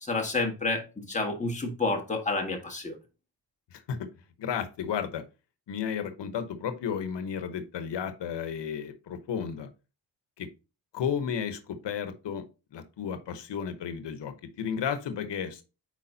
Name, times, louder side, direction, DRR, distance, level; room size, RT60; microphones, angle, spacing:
voice 1, 0.0-3.0, left 3 dB, 15° left, 1.6 m, -29 dB
voice 2, 3.7-4.1 4.4-5.2 5.7-9.7 10.4-10.5 10.9-12.4 12.7-15.6, left 7 dB, 85° left, 1.0 m, -33 dB
8.4 x 4.7 x 2.7 m
wide cardioid pair, 125°, 41 cm